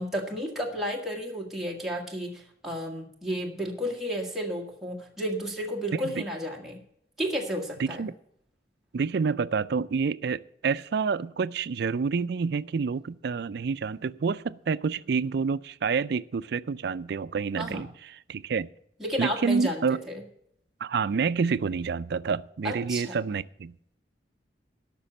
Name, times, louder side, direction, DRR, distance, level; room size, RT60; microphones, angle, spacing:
voice 1, 0.0-6.8 7.2-8.1 17.6-17.8 19.0-20.2 22.6-23.2, equal, ahead, -2 dB, 1.7 m, -32 dB
voice 2, 7.8-8.1 8.9-17.9 18.3-18.7 19.2-20.0 20.8-23.8, right 5 dB, 65° right, 17 dB, 0.4 m, -28 dB
12.5 x 6.1 x 7.8 m, 0.71 s
head